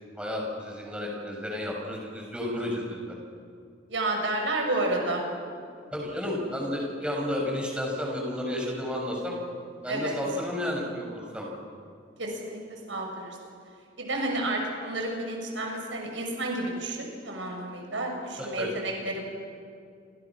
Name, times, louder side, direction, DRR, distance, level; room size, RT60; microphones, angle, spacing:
voice 1, 0.2-3.1 5.9-9.4 9.8-11.5 18.4-18.7, left 1 dB, 5° right, -1 dB, 6.6 m, -32 dB
voice 2, 3.9-5.3 9.9-10.1 12.2-13.4 14.0-19.2, right 2 dB, 85° right, 1 dB, 6.2 m, -31 dB
29.0 x 27.0 x 6.2 m, 2.3 s
head